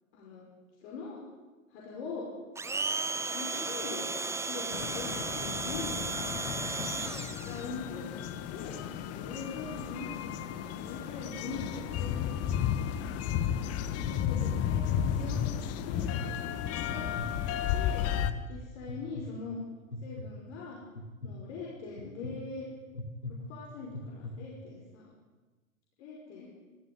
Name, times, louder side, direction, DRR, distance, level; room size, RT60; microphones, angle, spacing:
voice 1, 0.1-0.5 0.8-1.2 1.7-2.3 3.3-6.0 6.8-7.1 7.4-8.1 8.5-8.8 9.1-12.4 12.9-13.3 14.0-15.4 15.8-16.1 16.7-17.0 17.5-18.0 18.5-19.6 20.0-20.8 21.2-22.7 23.3-25.0 26.0-26.5, left 4 dB, 55° left, -3 dB, 5.8 m, -42 dB
Domestic sounds home sounds, 2.6-7.6, right 3 dB, 5° right, 0.8 m, -34 dB
sound 1, 4.7-18.3, left 10 dB, 35° left, 1.5 m, -33 dB
sound 2, 14.0-14.4 14.9-15.4 15.9-16.3 16.9-17.3 17.9-18.3 18.9-19.2 19.9-20.3 21.0-21.3 22.0-22.3 22.9-23.3 23.9-24.3, left 2 dB, 85° left, 2.8 m, -40 dB
25.0 x 15.0 x 9.4 m, 1.2 s
figure-of-eight pair, 90°, 41 cm